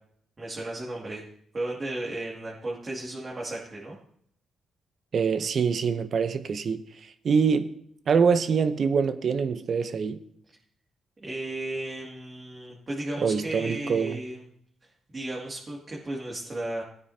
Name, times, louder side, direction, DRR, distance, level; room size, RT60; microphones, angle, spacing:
voice 1, 0.4-1.2 1.5-4.0 11.2-14.4 14.8-16.8, right 1 dB, 30° right, 2.4 m, -34 dB
voice 2, 5.1-6.8 7.2-7.7 8.1-10.2 13.2-14.2, right 6 dB, 55° right, 0.8 m, -24 dB
16.5 x 9.2 x 2.9 m
cardioid pair, 80°, 0 cm